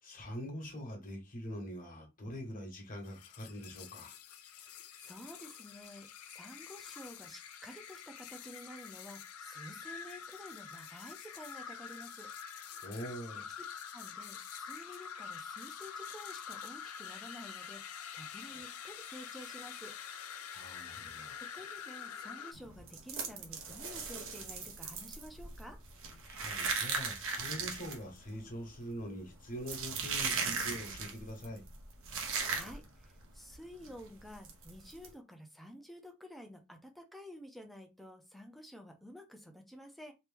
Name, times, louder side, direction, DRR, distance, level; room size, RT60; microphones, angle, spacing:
voice 1, 0.0-4.2 12.8-13.5 18.5-18.6 20.5-21.4 26.3-31.6, equal, 40° left, 1.3 m, -44 dB
sound 1, 3.0-22.5, left 7 dB, 75° left, 0.5 m, -46 dB
voice 2, 5.0-12.3 12.6-12.9 13.9-20.0 21.5-25.8 32.1-40.1, equal, ahead, 0.6 m, -51 dB
sound 2, 22.5-33.0 33.3-33.5 33.8-34.0 34.4-35.1, right 5 dB, 65° right, 0.9 m, -38 dB
3.0 x 2.8 x 3.4 m
head